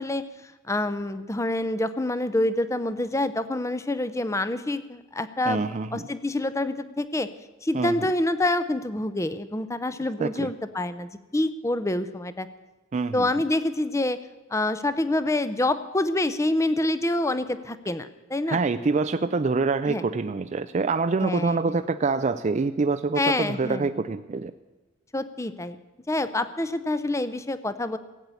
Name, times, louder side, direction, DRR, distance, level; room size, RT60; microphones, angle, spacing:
voice 1, 0.0-5.6 5.9-7.3 7.6-12.5 13.1-14.2 14.5-18.6 19.9-20.0 21.2-21.8 23.2-23.9 25.1-25.8 26.1-28.0, left 1 dB, 15° left, 13 dB, 0.6 m, -27 dB
voice 2, 5.5-6.1 7.7-8.1 10.2-10.5 12.9-13.3 18.5-24.5, right 4 dB, 35° right, 10 dB, 0.4 m, -26 dB
16.0 x 8.5 x 8.2 m, 1.1 s
head